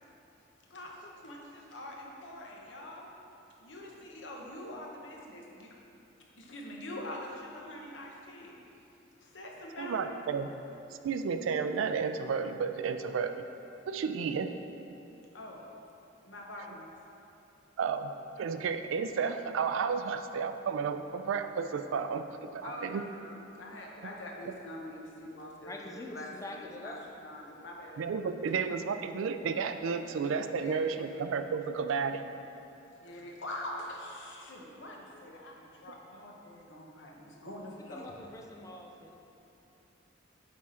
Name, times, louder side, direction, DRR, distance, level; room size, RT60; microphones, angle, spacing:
voice 1, 0.7-3.1 3.6-5.8 6.4-8.6 9.2-10.2 15.3-15.6 16.2-16.9 22.6-27.0 27.2-28.0 30.6-31.2 33.0-38.1, left 1 dB, 65° left, -1 dB, 0.9 m, -44 dB
voice 2, 9.8-10.5 11.0-13.5 13.9-14.5 17.8-18.1 18.4-23.0 28.0-32.2, right 5 dB, 80° right, 9 dB, 0.3 m, -32 dB
voice 3, 25.7-27.0 37.6-37.7 37.9-39.2, left 1 dB, 15° left, 1 dB, 0.4 m, -45 dB
8.5 x 3.6 x 4.3 m, 2.9 s
head